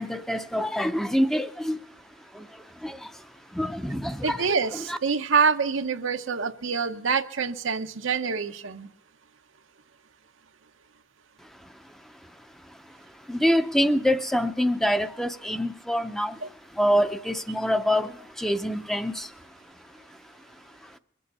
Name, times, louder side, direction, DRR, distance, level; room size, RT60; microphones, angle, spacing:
voice 1, 0.0-1.8 2.8-3.0 3.6-4.4 4.7-5.0 13.3-16.4 16.8-18.1 18.4-19.3, equal, ahead, 0.6 m, -25 dB
voice 2, 4.2-8.9 16.4-16.5, right 5 dB, 80° right, 0.9 m, -26 dB
22.5 x 8.5 x 6.6 m
head